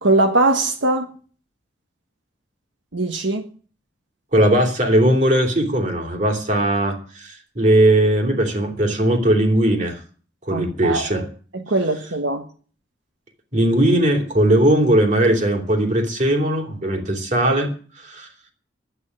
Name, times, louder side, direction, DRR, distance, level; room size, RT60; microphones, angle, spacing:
voice 1, 0.0-1.1 2.9-3.5 10.5-11.2 11.5-12.4, right 2 dB, 80° right, 1.4 m, -21 dB
voice 2, 4.3-10.0 10.5-11.2 13.5-17.7 18.0-18.3, right 1 dB, 40° right, 3.0 m, -18 dB
11.0 x 8.9 x 9.6 m
head